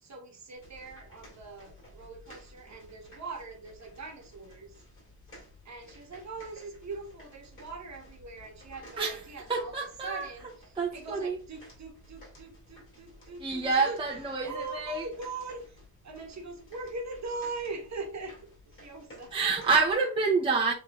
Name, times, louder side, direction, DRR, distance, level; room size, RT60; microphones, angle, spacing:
voice 1, 0.0-4.8 5.6-9.8 10.0-10.5 10.9-14.0 14.4-15.8 16.0-19.3, right 3 dB, 45° right, 1.3 m, -41 dB
sound 1, 0.5-20.0, left 1 dB, 35° left, 2.7 m, -54 dB
voice 2, 9.5-10.3 10.7-11.4 13.4-15.1 19.3-20.7, right 4 dB, 15° right, 0.6 m, -28 dB
6.7 x 3.2 x 2.3 m
wide cardioid pair, 145°, 37 cm